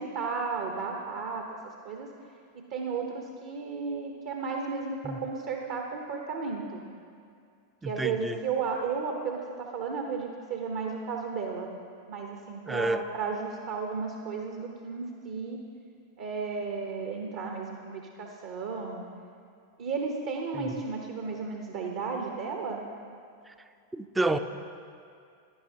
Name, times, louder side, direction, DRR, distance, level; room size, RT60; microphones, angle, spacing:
voice 1, 0.0-1.4 1.8-2.1 2.5-6.8 7.9-11.7 12.1-15.6 16.2-19.0 19.8-22.8, right 5 dB, 50° right, 1 dB, 0.8 m, -34 dB
voice 2, 7.8-8.4 12.7-13.0 20.5-20.7 23.5-23.6 23.9-24.4, right 2 dB, 10° right, 9 dB, 0.4 m, -29 dB
15.5 x 10.5 x 2.8 m, 2.4 s
figure-of-eight pair, 90°, 0 cm